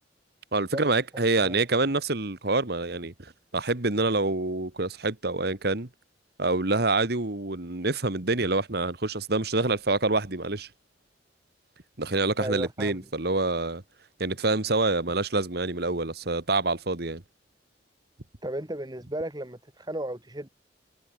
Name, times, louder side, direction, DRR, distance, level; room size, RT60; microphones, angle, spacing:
voice 1, 0.5-5.9 6.4-10.7 12.0-13.8 14.2-17.2, right 2 dB, 60° right, 1.9 m, -26 dB
voice 2, 1.1-1.6 12.4-13.0 18.4-20.5, right 1 dB, 20° right, 2.3 m, -34 dB
head